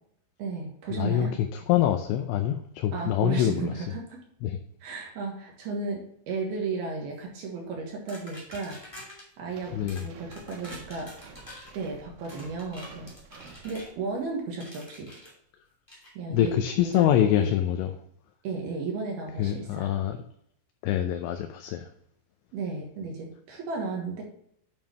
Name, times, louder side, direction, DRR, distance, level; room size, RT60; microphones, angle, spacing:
voice 1, 0.4-1.3 2.9-4.2 4.8-8.8 9.4-11.1 11.7-13.1 13.6-15.1 16.1-16.5 16.8-17.5 18.4-19.9 22.5-24.2, right 4 dB, 65° right, 0 dB, 2.9 m, -34 dB
voice 2, 0.9-3.8 4.4-4.6 9.7-10.1 16.3-17.9 19.4-20.2 20.8-21.9, left 11 dB, 80° left, 6 dB, 2.8 m, -25 dB
sound 1, 8.1-9.3 9.9-10.1 10.3-11.7 12.3-13.9 14.6-15.3 15.9-16.1, equal, 15° left, 1.0 m, -46 dB
sound 2, 9.5-14.2, right 4 dB, 85° right, 3.8 m, -50 dB
8.8 x 7.4 x 3.0 m, 0.70 s
omnidirectional pair, 5.7 m